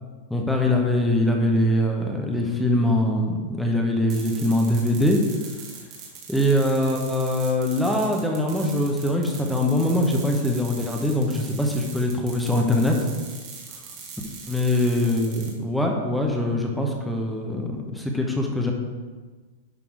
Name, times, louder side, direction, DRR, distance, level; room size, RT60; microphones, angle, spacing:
voice 1, 0.3-5.2 6.3-13.0 14.5-18.7, left 1 dB, ahead, 1 dB, 1.1 m, -23 dB
sound 1, 4.1-15.5, right 5 dB, 35° right, 2.3 m, -41 dB
11.0 x 5.8 x 3.9 m, 1.4 s
supercardioid pair, 145°, 0 cm